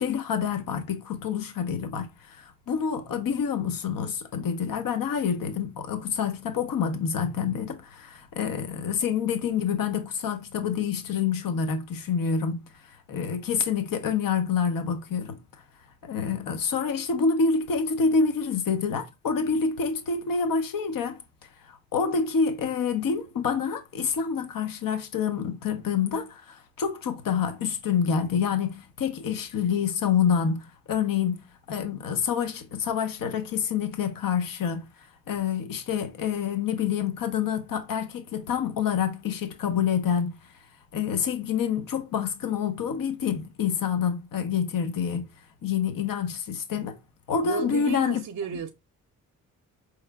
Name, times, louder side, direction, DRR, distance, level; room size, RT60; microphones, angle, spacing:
voice 1, 0.0-15.4 16.0-21.2 21.7-31.4 31.7-34.9 35.3-40.4 40.9-45.3 45.6-47.0 47.3-48.2, left 6 dB, 65° left, 0.9 m, -27 dB
voice 2, 47.4-48.7, right 6 dB, 55° right, 0.6 m, -32 dB
4.6 x 3.2 x 2.3 m
supercardioid pair, 50°, 36 cm